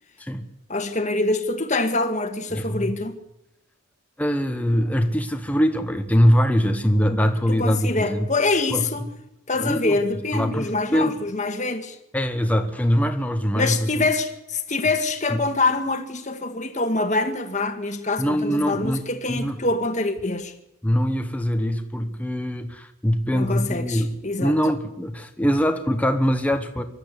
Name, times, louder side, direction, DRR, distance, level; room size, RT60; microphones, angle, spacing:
voice 1, 0.7-3.2 7.5-9.1 9.5-12.0 13.5-20.5 23.3-24.5, left 3 dB, 35° left, 1.8 m, -25 dB
voice 2, 2.5-2.9 4.2-8.3 8.7-8.9 9.6-10.0 10.3-11.2 12.1-14.1 15.3-15.4 18.2-19.0 19.3-19.6 20.8-26.8, equal, 5° left, 1.2 m, -23 dB
24.0 x 13.0 x 8.5 m
head